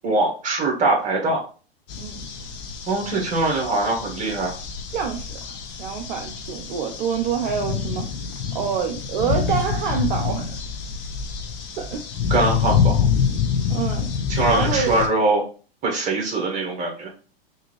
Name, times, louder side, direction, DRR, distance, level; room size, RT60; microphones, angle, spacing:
voice 1, 0.0-1.4 2.9-4.5 12.3-13.0 14.3-15.4 15.8-17.1, right 2 dB, 25° right, -1 dB, 1.6 m, -22 dB
sound 1, 1.9-15.1, left 6 dB, 45° left, 0.8 m, -26 dB
voice 2, 2.0-2.3 4.9-5.5 5.8-8.0 8.5-10.6 11.8-12.0 13.7-14.1 14.5-15.0, right 7 dB, 50° right, 3 dB, 0.6 m, -27 dB
3.5 x 2.6 x 3.1 m, 0.37 s
figure-of-eight pair, 100°, 30 cm